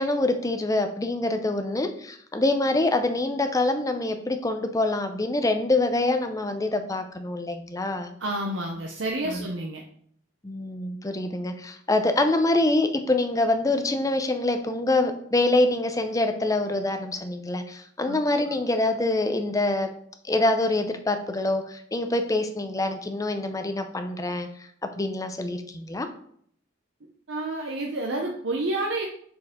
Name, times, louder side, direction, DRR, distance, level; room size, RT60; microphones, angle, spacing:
voice 1, 0.0-8.1 9.3-9.5 10.4-19.9 20.2-24.5 25.0-26.1, left 2 dB, 20° left, 7 dB, 0.6 m, -25 dB
voice 2, 8.2-9.8 18.1-18.2 18.5-18.6 27.3-29.1, right 2 dB, 75° right, 1 dB, 0.8 m, -29 dB
6.4 x 4.6 x 3.6 m, 0.64 s
head